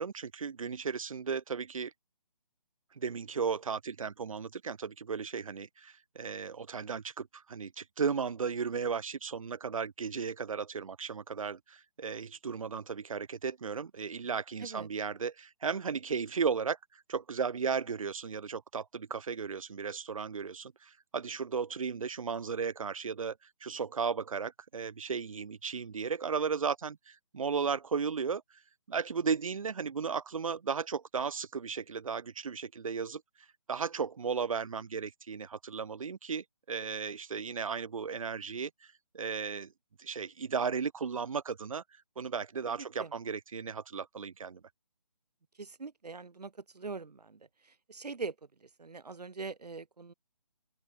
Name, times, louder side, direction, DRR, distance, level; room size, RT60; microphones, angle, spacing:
voice 1, 0.0-1.9 3.0-28.4 28.9-33.2 33.7-39.7 40.0-41.8 42.2-44.6, right 6 dB, 55° right, 1.7 m, -35 dB
voice 2, 42.8-43.1 45.6-48.3 48.6-50.1, right 4 dB, 85° right, 1.5 m, -42 dB
open air
figure-of-eight pair, 160°, 20 cm